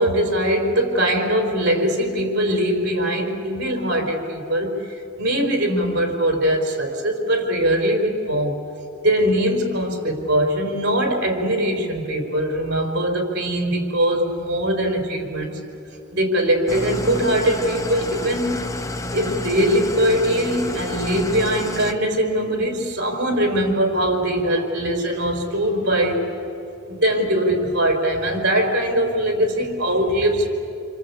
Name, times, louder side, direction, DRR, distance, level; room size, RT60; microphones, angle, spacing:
voice 1, 0.0-8.6 9.0-15.6 16.1-18.7 19.1-26.3 26.9-30.5, right 1 dB, 55° right, 3 dB, 4.7 m, -21 dB
Engine starting / Idling, 16.7-21.9, left 1 dB, 15° left, 1.0 m, -30 dB
27.5 x 24.5 x 8.5 m, 2.8 s
head